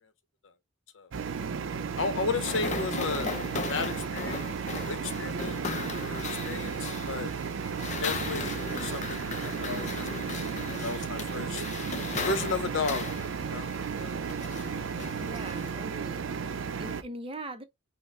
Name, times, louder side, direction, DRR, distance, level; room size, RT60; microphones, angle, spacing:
sound 1, 1.1-17.0, right 6 dB, 85° right, 0.5 m, -34 dB
voice 1, 2.0-4.4 4.8-5.6 5.9-7.3 8.0-10.2 10.7-11.7 12.2-13.0 13.5-13.7 14.0-14.2 15.0-15.1, left 4 dB, 85° left, 0.7 m, -34 dB
sound 2, 2.4-15.7, left 4 dB, 40° left, 0.6 m, -38 dB
voice 2, 15.1-17.6, right 2 dB, 30° right, 0.6 m, -41 dB
5.5 x 2.0 x 3.4 m
head